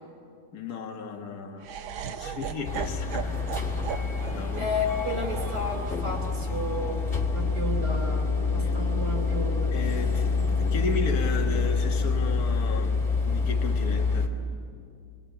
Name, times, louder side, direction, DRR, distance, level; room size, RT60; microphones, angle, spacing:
voice 1, 0.5-1.7 2.1-3.5 4.3-4.7 8.6-8.7 9.7-14.3, left 4 dB, 50° left, 3 dB, 2.1 m, -35 dB
Laughter, 1.6-7.8, right 8 dB, 90° right, 1.9 m, -38 dB
sound 1, 2.6-14.3, left 4 dB, 25° left, 2.8 m, -27 dB
voice 2, 4.6-7.0 7.3-9.7, left 1 dB, 60° right, 0 dB, 3.8 m, -32 dB
sound 2, 6.4-12.1, left 4 dB, 85° left, 2.9 m, -39 dB
28.5 x 21.5 x 9.5 m, 2.4 s
omnidirectional pair, 2.1 m